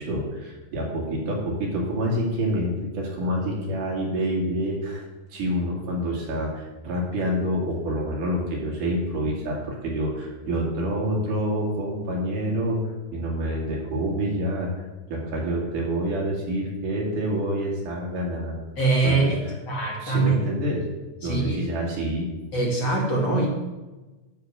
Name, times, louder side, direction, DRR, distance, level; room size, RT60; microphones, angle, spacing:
voice 1, 0.0-5.0 5.3-12.8 13.1-18.6 19.0-19.3 20.0-20.9 21.2-22.3, equal, 50° right, -2 dB, 3.3 m, -27 dB
voice 2, 18.8-20.4 21.2-21.7 22.5-23.5, right 3 dB, 35° left, -2 dB, 2.0 m, -23 dB
12.5 x 5.1 x 7.7 m, 1.2 s
omnidirectional pair, 5.3 m